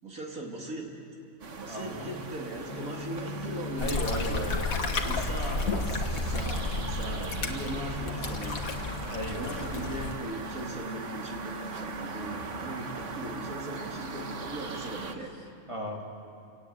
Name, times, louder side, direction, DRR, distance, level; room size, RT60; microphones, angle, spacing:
voice 1, 0.0-0.9 1.6-4.4 5.0-8.7 9.2-15.3, right 1 dB, 85° right, 0 dB, 3.4 m, -39 dB
sound 1, 1.4-15.2, right 3 dB, 60° right, 1.6 m, -40 dB
voice 2, 1.6-2.1 3.8-5.2 9.1-9.6 15.7-16.1, equal, 20° right, -1 dB, 2.6 m, -36 dB
Bowed string instrument, 2.7-9.4, left 4 dB, 20° left, 0.7 m, -43 dB
sound 2, 3.8-10.1, left 3 dB, 85° left, 1.9 m, -32 dB
29.0 x 18.0 x 8.1 m, 2.6 s
omnidirectional pair, 1.4 m